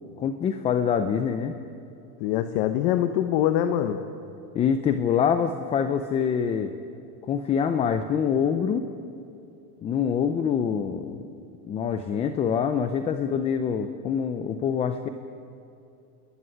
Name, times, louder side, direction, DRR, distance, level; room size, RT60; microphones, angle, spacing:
voice 1, 0.2-1.5 4.5-6.7 7.2-8.9 9.8-11.2 11.6-15.1, left 7 dB, 15° left, 9 dB, 0.5 m, -25 dB
voice 2, 2.2-4.0, left 11 dB, 40° left, 8 dB, 1.3 m, -24 dB
28.5 x 21.0 x 9.8 m, 2.7 s
supercardioid pair, 160°, 45 cm